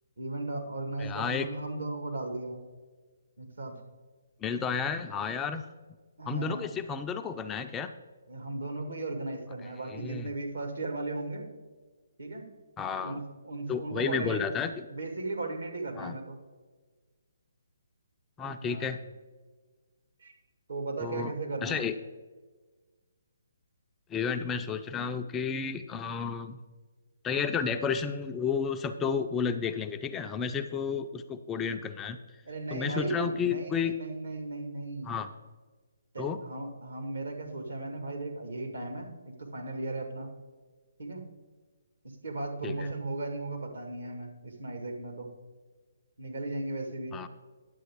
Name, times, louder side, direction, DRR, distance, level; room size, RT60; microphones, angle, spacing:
voice 1, 0.2-2.6 3.4-3.8 6.2-6.7 8.3-11.5 12.2-12.4 13.0-14.5 14.9-16.4 18.6-18.9 20.2-20.3 20.7-21.9 32.4-35.2 36.1-40.3 41.0-41.2 42.2-45.3 46.2-47.2, right 2 dB, 70° right, 3 dB, 1.6 m, -36 dB
voice 2, 1.0-1.5 4.4-5.6 6.3-7.9 9.9-10.3 12.8-13.2 13.7-14.7 16.0-16.2 18.4-19.0 21.0-21.3 21.6-21.9 24.1-26.6 27.2-32.2 32.7-33.9 35.0-35.3 36.2-36.4 42.6-42.9 47.1-47.3, left 6 dB, 15° left, 7 dB, 0.3 m, -32 dB
9.9 x 7.6 x 3.5 m, 1.4 s
figure-of-eight pair, 140°, 0 cm